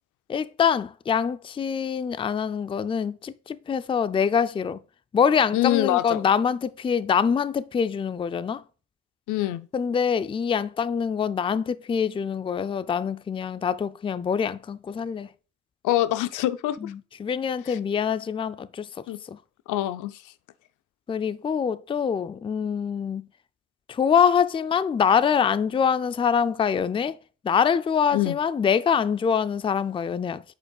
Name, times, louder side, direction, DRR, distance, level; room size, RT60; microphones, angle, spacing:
voice 1, 0.3-4.8 5.1-8.6 9.7-15.3 16.8-18.9 19.3-19.4 21.1-23.3 23.9-27.2 27.4-30.4, left 7 dB, 20° left, 0.3 m, -24 dB
voice 2, 5.5-6.2 9.3-9.7 15.8-16.9 17.7-17.8 19.1-19.2 19.7-20.2 28.1-28.4, left 14 dB, 85° left, 0.5 m, -25 dB
8.3 x 5.4 x 2.3 m
cardioid pair, 90°, 30 cm